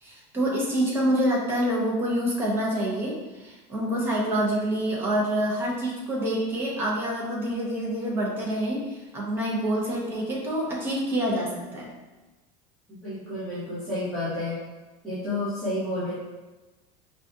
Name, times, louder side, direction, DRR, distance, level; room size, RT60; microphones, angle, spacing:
voice 1, 0.0-11.9, right 1 dB, 15° right, -4 dB, 0.6 m, -27 dB
voice 2, 13.0-14.6 15.0-16.1, left 1 dB, 5° left, -17 dB, 1.2 m, -30 dB
4.8 x 2.3 x 2.6 m, 1.1 s
cardioid pair, 175°, 18 cm